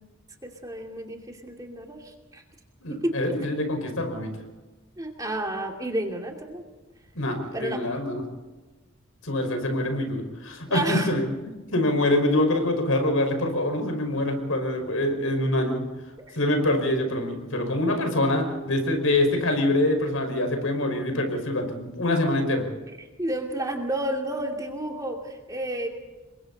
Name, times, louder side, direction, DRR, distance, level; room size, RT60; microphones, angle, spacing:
voice 1, 0.4-2.4 2.9-3.4 5.0-6.6 7.5-7.8 10.7-11.1 16.2-16.4 23.0-25.9, right 1 dB, 15° right, 1 dB, 2.7 m, -31 dB
voice 2, 2.8-4.3 7.2-8.2 9.2-15.9 16.4-22.7, left 1 dB, 85° left, 5 dB, 5.3 m, -25 dB
29.0 x 23.0 x 4.2 m, 1.2 s
head